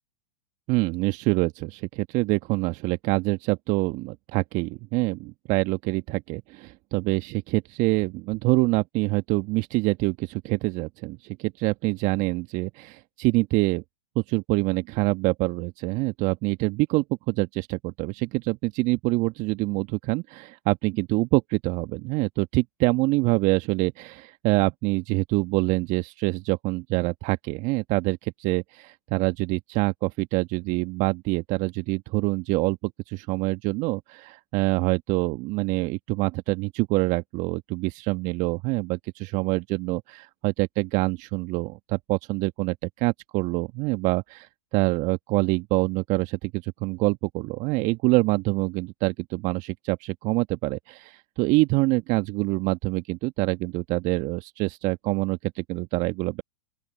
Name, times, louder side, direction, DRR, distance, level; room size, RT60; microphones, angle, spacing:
voice 1, 0.7-13.8 14.1-56.4, right 23 dB, 40° right, 1.4 m, -26 dB
open air
hypercardioid pair, 105°, 19 cm